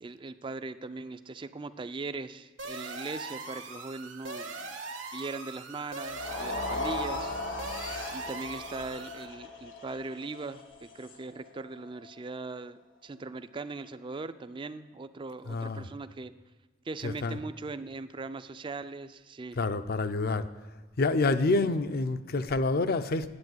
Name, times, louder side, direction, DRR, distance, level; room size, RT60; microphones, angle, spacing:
voice 1, 0.0-4.7 5.1-7.4 8.1-16.3 16.9-19.6 21.4-21.7, right 3 dB, 25° right, 0.4 m, -40 dB
sound 1, 2.6-9.3, right 3 dB, 80° right, 1.4 m, -41 dB
sound 2, 6.0-12.3, left 2 dB, 80° left, 1.5 m, -37 dB
voice 2, 15.5-15.9 17.0-17.4 19.5-20.5 21.0-23.3, left 3 dB, 50° left, 0.5 m, -28 dB
9.6 x 8.6 x 7.8 m
head